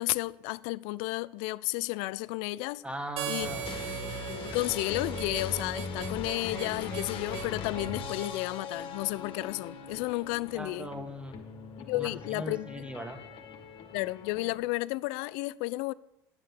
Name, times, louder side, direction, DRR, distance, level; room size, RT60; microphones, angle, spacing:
voice 1, 0.0-2.8 3.3-3.5 4.4-10.9 11.8-12.9 13.9-15.9, left 20 dB, 70° left, 0.4 m, -32 dB
voice 2, 2.8-3.7 10.5-11.4 11.8-13.2, equal, 10° right, 2.0 m, -39 dB
Harmonica, 3.2-8.4, right 15 dB, 70° right, 0.9 m, -40 dB
sound 1, 3.4-14.6, left 5 dB, 55° left, 1.9 m, -40 dB
9.8 x 7.4 x 8.4 m
hypercardioid pair, 70°, 11 cm